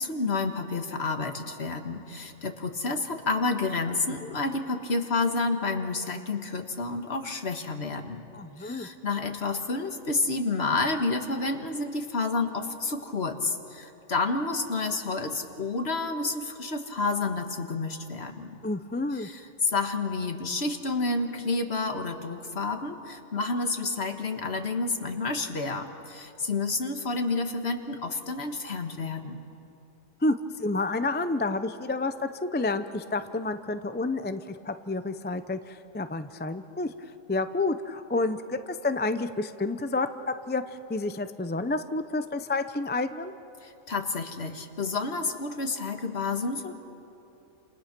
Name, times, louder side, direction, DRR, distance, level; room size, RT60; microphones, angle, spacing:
voice 1, 0.0-8.2 8.6-18.6 19.1-29.4 43.6-46.7, left 3 dB, 55° left, 5 dB, 1.8 m, -30 dB
voice 2, 8.3-8.9 18.6-19.3 30.2-36.9 37.3-40.6 40.9-43.3, left 2 dB, 15° left, 9 dB, 0.4 m, -29 dB
29.5 x 28.0 x 6.1 m, 2.9 s
omnidirectional pair, 1.4 m